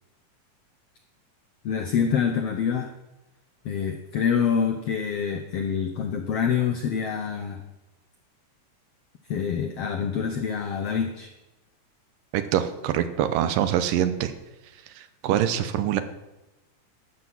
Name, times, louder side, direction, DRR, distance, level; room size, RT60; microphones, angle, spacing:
voice 1, 1.6-2.9 3.6-7.6 9.3-11.3, left 7 dB, 80° left, 5 dB, 1.3 m, -26 dB
voice 2, 12.3-14.3 15.0-16.0, right 10 dB, 90° right, 11 dB, 2.5 m, -24 dB
13.0 x 6.2 x 7.5 m, 1.0 s
omnidirectional pair, 3.9 m